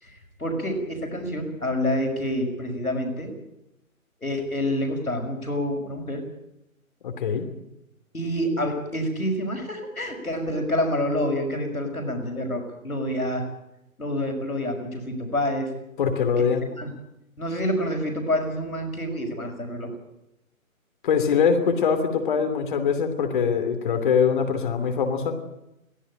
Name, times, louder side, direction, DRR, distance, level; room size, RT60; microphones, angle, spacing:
voice 1, 0.0-3.3 4.2-6.2 8.1-13.4 14.0-15.7 16.8-16.9 17.4-19.9, left 1 dB, 85° left, 2 dB, 6.0 m, -27 dB
voice 2, 7.0-7.5 16.0-16.6 21.0-25.3, left 6 dB, 35° left, 7 dB, 2.9 m, -23 dB
23.0 x 15.5 x 8.9 m, 0.86 s
figure-of-eight pair, 145°, 42 cm